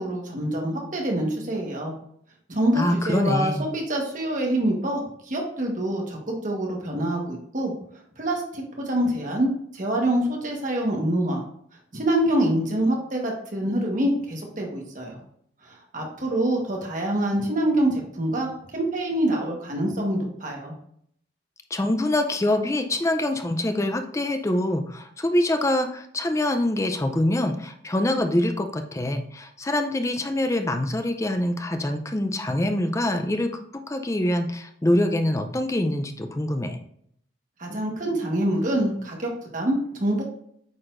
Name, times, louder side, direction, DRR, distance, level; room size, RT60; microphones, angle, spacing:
voice 1, 0.0-2.0 2.5-7.7 8.2-11.4 11.9-15.2 15.6-20.7 37.6-40.2, right 1 dB, 45° right, 0 dB, 1.4 m, -26 dB
voice 2, 2.7-3.7 21.7-36.8, left 1 dB, 15° left, 7 dB, 0.5 m, -25 dB
8.7 x 4.3 x 2.6 m, 0.68 s
head